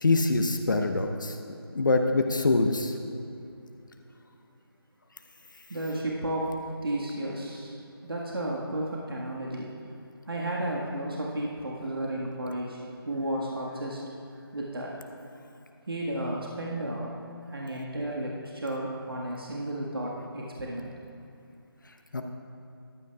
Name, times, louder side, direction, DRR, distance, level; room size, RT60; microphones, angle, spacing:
voice 1, 0.0-1.4 1.7-2.9 22.1-22.2, left 3 dB, 50° left, 5 dB, 0.8 m, -24 dB
voice 2, 5.7-6.5 6.8-9.7 10.2-12.8 13.0-14.0 14.3-14.9 15.9-17.1 17.5-20.9, right 1 dB, 65° right, -3 dB, 1.6 m, -33 dB
14.5 x 11.5 x 2.4 m, 2.7 s
figure-of-eight pair, 165°, 13 cm